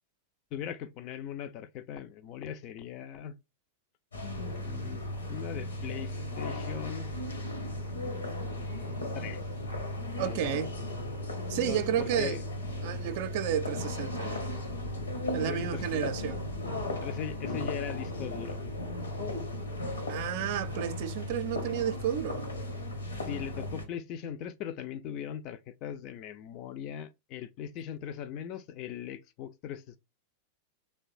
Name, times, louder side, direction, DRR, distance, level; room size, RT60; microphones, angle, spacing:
voice 1, 0.5-3.4 4.7-7.1 9.1-9.4 10.2-10.6 11.7-12.4 15.5-16.1 17.0-18.6 23.2-30.0, left 9 dB, 40° left, 0.3 m, -39 dB
sound 1, 4.1-23.8, left 1 dB, 70° left, 0.8 m, -36 dB
voice 2, 10.2-10.7 11.5-12.4 12.8-14.4 15.3-16.4 20.1-22.5, right 10 dB, 50° right, 0.4 m, -31 dB
2.9 x 2.2 x 2.5 m
figure-of-eight pair, 90°, 0 cm